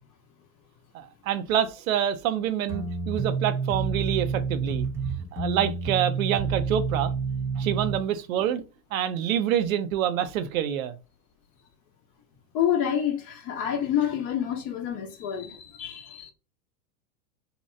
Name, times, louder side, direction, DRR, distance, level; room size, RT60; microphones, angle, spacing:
voice 1, 0.9-4.9 5.3-7.1 7.6-8.6 8.9-10.9, right 10 dB, 65° right, 0.6 m, -27 dB
sound 1, 2.7-8.0, right 5 dB, 5° right, 0.8 m, -29 dB
voice 2, 12.5-16.3, left 9 dB, 40° left, 0.8 m, -28 dB
2.8 x 2.2 x 3.1 m
hypercardioid pair, 100°, 45 cm